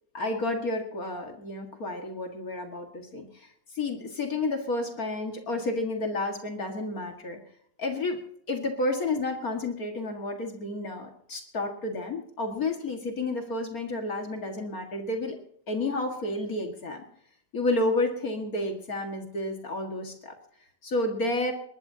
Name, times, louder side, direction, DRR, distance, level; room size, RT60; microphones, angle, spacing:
voice 1, 0.1-3.5 3.7-7.4 7.8-8.2 8.5-15.4 15.7-17.0 17.5-20.4 20.8-21.5, left 2 dB, 60° left, 3 dB, 2.3 m, -31 dB
21.0 x 20.5 x 2.8 m, 0.69 s
omnidirectional pair, 1.8 m